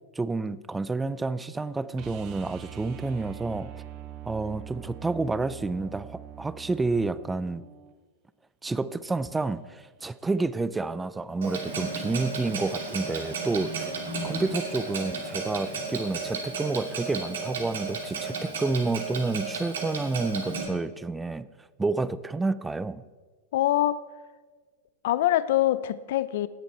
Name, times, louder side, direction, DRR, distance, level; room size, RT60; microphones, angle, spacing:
voice 1, 0.2-3.7 4.3-7.6 8.6-13.9 14.2-21.5 21.8-23.1, right 3 dB, 10° right, 17 dB, 0.4 m, -29 dB
sound 1, 2.0-7.9 10.4-10.5, right 12 dB, 40° right, 0.8 m, -43 dB
Clock, 11.4-20.6, right 4 dB, 90° right, 2.5 m, -33 dB
voice 2, 23.5-24.0 25.0-26.5, left 14 dB, 65° left, 17 dB, 0.5 m, -24 dB
18.0 x 7.1 x 4.4 m, 1.4 s
hypercardioid pair, 135°, 0 cm